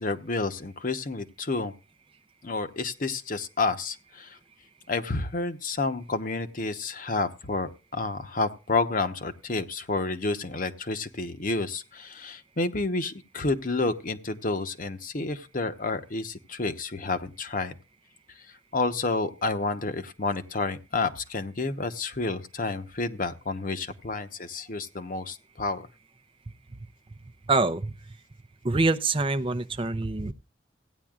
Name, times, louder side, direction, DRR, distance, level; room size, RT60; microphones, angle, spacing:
voice 1, 0.0-1.7 2.4-4.3 4.9-17.7 18.7-25.9, left 3 dB, 50° left, 1.0 m, -30 dB
voice 2, 27.5-27.9 28.6-30.3, right 3 dB, 30° right, 0.6 m, -25 dB
16.5 x 9.8 x 2.4 m
head